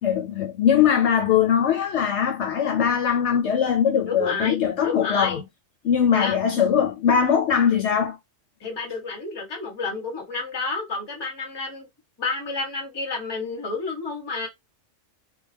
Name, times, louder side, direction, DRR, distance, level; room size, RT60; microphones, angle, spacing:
voice 1, 0.0-5.4 5.8-8.2, left 8 dB, 70° left, 0.8 m, -21 dB
voice 2, 4.0-5.4 6.1-6.4 8.6-11.9 12.2-14.5, left 3 dB, 25° left, 0.7 m, -30 dB
2.3 x 2.1 x 3.2 m
omnidirectional pair, 1.3 m